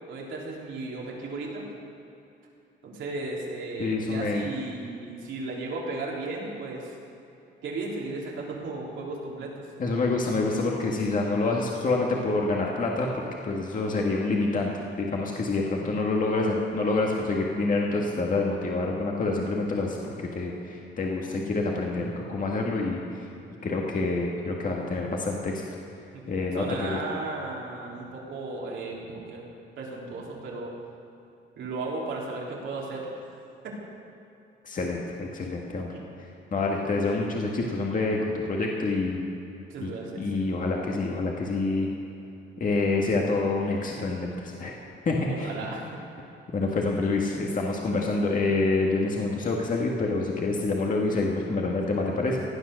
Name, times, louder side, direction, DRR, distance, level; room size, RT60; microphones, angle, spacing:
voice 1, 0.1-1.6 2.8-6.9 7.6-9.6 26.1-26.3 26.5-29.4 29.8-30.7 31.6-33.2 33.6-33.7 35.9-36.0 39.7-40.2 45.3-46.0, right 3 dB, 75° right, -3 dB, 3.4 m, -35 dB
voice 2, 3.8-4.4 9.8-23.2 23.6-25.6 26.3-27.0 34.6-35.9 36.5-39.2 39.8-39.9 40.2-41.9 42.6-44.8 45.1-45.5 46.5-52.4, left 3 dB, 40° left, -1 dB, 1.8 m, -27 dB
17.0 x 9.3 x 6.5 m, 2.9 s
cardioid pair, 90°, 20 cm